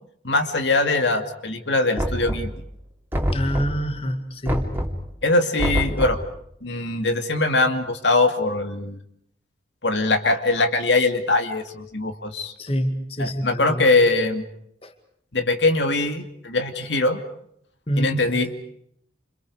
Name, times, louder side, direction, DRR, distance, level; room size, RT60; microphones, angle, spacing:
voice 1, 0.2-2.5 5.2-6.2 6.6-9.0 9.8-12.5 13.2-14.4 15.3-17.2 18.0-18.7, left 2 dB, 75° left, 6 dB, 2.5 m, -22 dB
Knock, 2.0-2.7 3.1-3.9 4.5-5.1 5.6-6.3, equal, 10° right, 3.1 m, -26 dB
voice 2, 3.3-4.7 12.6-13.8 14.8-14.9 17.9-18.2, equal, 30° left, 6 dB, 2.2 m, -26 dB
29.5 x 28.0 x 4.9 m, 0.71 s
head